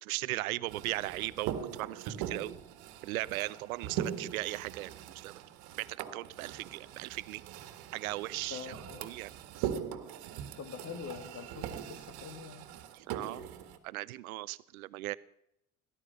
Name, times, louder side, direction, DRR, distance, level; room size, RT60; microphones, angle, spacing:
voice 1, 0.0-2.5 3.0-4.9 5.2-5.3 5.8-7.4 7.9-9.3 9.6-9.7 12.9-13.4 13.8-15.2, right 18 dB, 75° right, 20 dB, 0.7 m, -38 dB
sound 1, 0.7-13.8, right 9 dB, 55° right, 1.9 m, -41 dB
voice 2, 8.5-9.1 10.6-12.7, left 6 dB, 35° left, 10 dB, 2.4 m, -44 dB
18.5 x 11.5 x 6.9 m, 0.77 s
hypercardioid pair, 70°, 43 cm